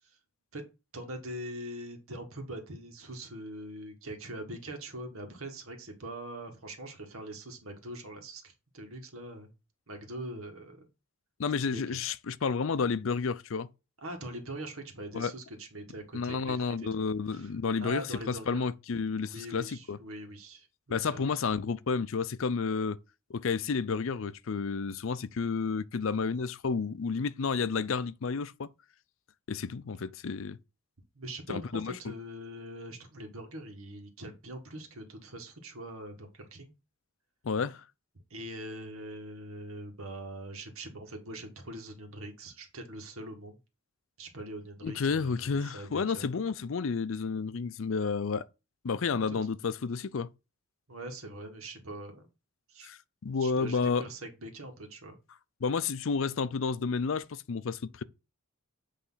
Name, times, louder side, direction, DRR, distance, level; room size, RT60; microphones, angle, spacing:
voice 1, 0.9-9.5 9.9-10.9 11.6-12.0 14.0-16.9 17.3-17.5 17.8-18.6 19.2-21.4 31.2-36.7 38.3-43.6 44.2-46.3 49.1-49.4 50.9-52.3 52.7-52.9 53.4-55.2, right 1 dB, 80° right, 1.7 m, -43 dB
voice 2, 11.4-13.7 15.1-15.3 16.1-20.0 20.9-23.0 23.3-28.7 29.5-30.6 31.5-31.9 37.4-37.8 44.8-48.4 48.8-50.3 52.8-53.0 53.2-54.0 55.6-58.0, left 5 dB, 65° left, 0.5 m, -31 dB
8.5 x 3.3 x 5.6 m
head